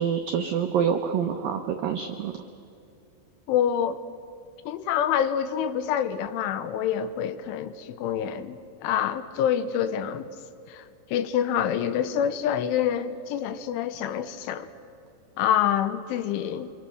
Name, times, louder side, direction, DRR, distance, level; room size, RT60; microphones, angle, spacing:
voice 1, 0.0-2.3, right 7 dB, 85° right, 6 dB, 2.0 m, -26 dB
voice 2, 3.5-4.0 4.7-10.3 10.7-10.9 11.1-14.7 15.4-16.7, left 9 dB, 85° left, 11 dB, 3.5 m, -26 dB
27.0 x 23.5 x 6.4 m, 2.7 s
omnidirectional pair, 5.5 m